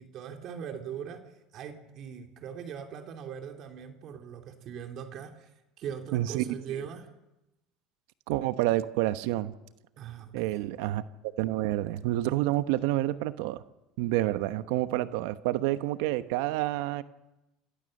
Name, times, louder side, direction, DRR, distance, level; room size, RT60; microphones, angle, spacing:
voice 1, 0.0-5.5 5.8-7.1 10.0-10.6, right 8 dB, 55° right, 5 dB, 3.0 m, -41 dB
voice 2, 6.1-6.4 8.3-9.5 10.3-11.0 11.4-13.6 14.0-17.0, right 15 dB, 80° right, 12 dB, 1.0 m, -28 dB
28.5 x 16.0 x 6.6 m, 0.97 s
supercardioid pair, 100°, 0 cm